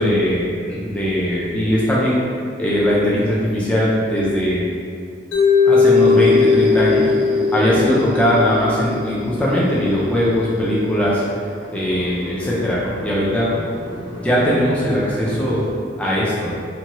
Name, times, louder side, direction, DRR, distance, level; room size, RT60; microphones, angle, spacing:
voice 1, 0.0-2.2 2.6-4.6 5.7-7.1 7.5-11.2 11.7-13.5 14.2-15.7 16.0-16.6, equal, 5° left, -7 dB, 0.4 m, -19 dB
Mallet percussion, 5.3-9.4, left 4 dB, 90° left, 0.6 m, -17 dB
sound 1, 5.9-13.5, right 1 dB, 55° right, 0.4 m, -32 dB
Car, 8.9-15.7, equal, 25° right, 0.7 m, -34 dB
2.7 x 2.2 x 2.9 m, 2.2 s
head